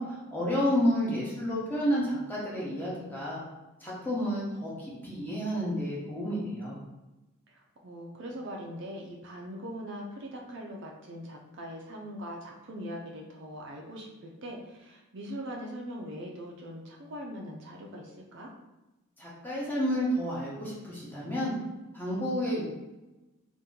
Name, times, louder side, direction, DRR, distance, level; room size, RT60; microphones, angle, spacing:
voice 1, 0.0-3.4 3.8-6.8 19.2-21.5 21.9-22.6, equal, 10° left, -6 dB, 0.8 m, -30 dB
voice 2, 7.5-18.5, equal, 55° right, 0 dB, 0.5 m, -41 dB
2.8 x 2.5 x 3.7 m, 1.0 s
head